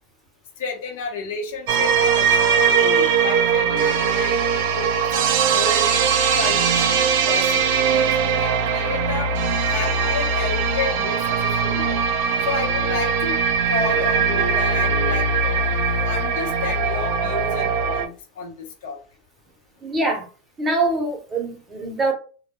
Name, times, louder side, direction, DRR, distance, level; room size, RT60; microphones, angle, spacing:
voice 1, 0.6-5.9 6.4-9.3 9.7-12.0 12.4-13.4 13.7-15.6 16.1-19.0, left 4 dB, 75° left, 2 dB, 0.7 m, -31 dB
sound 1, 1.7-18.1, right 6 dB, 60° right, 0.3 m, -20 dB
voice 2, 6.1-6.6 16.0-16.1 19.8-20.2 20.6-22.1, right 2 dB, 15° right, 1 dB, 0.6 m, -24 dB
2.1 x 2.0 x 2.9 m, 0.37 s
supercardioid pair, 160°, 0 cm